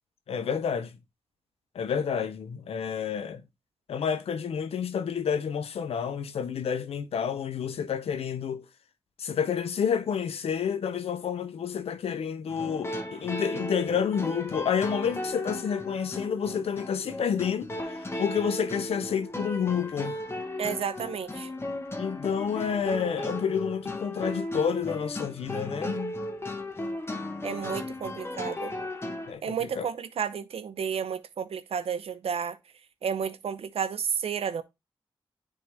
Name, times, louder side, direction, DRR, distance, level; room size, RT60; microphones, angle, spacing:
voice 1, 0.3-1.0 1.7-3.4 3.9-8.6 9.2-17.7 18.2-20.2 22.0-26.2 29.3-29.9, left 7 dB, 85° left, 0.7 m, -29 dB
sound 1, 12.5-29.3, left 1 dB, 25° left, 1.1 m, -36 dB
voice 2, 20.6-21.5 27.4-28.7 29.4-32.6 33.0-34.6, right 7 dB, 80° right, 0.7 m, -31 dB
9.8 x 3.8 x 3.2 m
cardioid pair, 55°, 10 cm